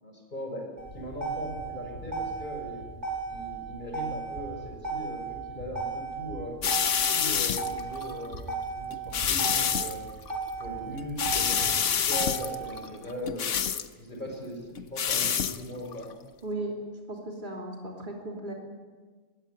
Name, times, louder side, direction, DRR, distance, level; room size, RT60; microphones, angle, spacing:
voice 1, 0.0-0.7 0.9-2.8 3.3-6.6 7.1-10.1 10.6-13.6 13.9-16.1, equal, 35° left, 1 dB, 6.8 m, -39 dB
Motor vehicle (road), 0.8-12.8, right 4 dB, 60° right, 5.8 m, -35 dB
sound 1, 6.6-8.4 8.9-9.9 10.3-10.6 11.0-13.9 14.8-15.6 15.9-16.1, left 8 dB, 70° left, 1.3 m, -27 dB
voice 2, 16.4-18.5, right 1 dB, 40° right, -1 dB, 3.2 m, -36 dB
22.5 x 17.0 x 9.6 m, 1.4 s
omnidirectional pair, 1.3 m